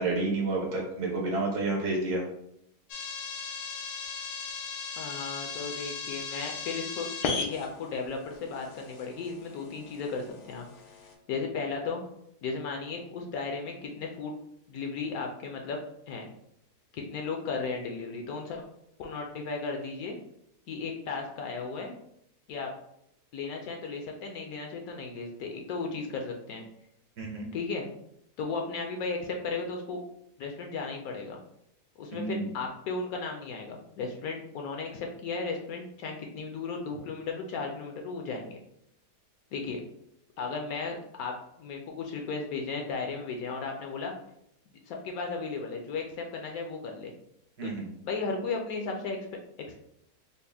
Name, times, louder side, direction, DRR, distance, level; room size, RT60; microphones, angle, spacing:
voice 1, 0.0-2.2 27.2-27.5 32.1-32.5 47.6-47.9, right 2 dB, 70° right, -1 dB, 1.5 m, -30 dB
sound 1, 2.9-11.1, left 5 dB, 90° left, 1.2 m, -37 dB
voice 2, 5.0-7.1 7.4-10.7 11.3-12.0 12.4-14.3 14.7-15.8 16.1-16.3 16.9-18.6 19.0-20.2 20.7-21.9 22.5-22.7 23.3-26.6 27.5-27.9 28.4-30.0 30.4-31.4 32.0-38.6 39.5-39.8 40.4-44.1 44.9-47.1 47.6-47.7 48.0-49.2 49.7-49.8, left 4 dB, 70° left, 2 dB, 0.9 m, -35 dB
4.0 x 2.1 x 3.4 m, 0.74 s
omnidirectional pair, 1.7 m